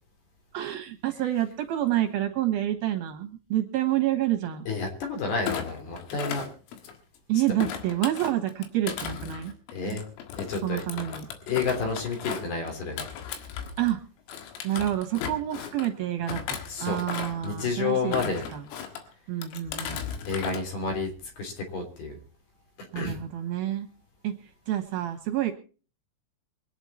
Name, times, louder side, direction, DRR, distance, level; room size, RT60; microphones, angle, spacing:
voice 1, 0.5-4.6 7.3-9.5 9.9-10.0 10.6-11.3 13.8-14.0 14.6-18.1 18.5-20.0 22.9-23.9 24.2-25.5, right 13 dB, 65° right, 5 dB, 2.5 m, -28 dB
voice 2, 4.7-6.5 9.7-10.0 10.4-10.8 11.5-13.1 16.7-17.0 17.4-18.4 20.2-21.1 21.4-22.2 23.0-23.2, left 4 dB, 55° left, 3 dB, 5.0 m, -30 dB
Thump thud, 5.4-7.2 7.6-14.0 14.3-15.9 16.3-17.5 18.0-19.0 19.4-20.6 20.9-21.3, left 8 dB, 90° left, 4.3 m, -36 dB
24.5 x 9.1 x 4.3 m, 0.37 s
omnidirectional pair, 5.8 m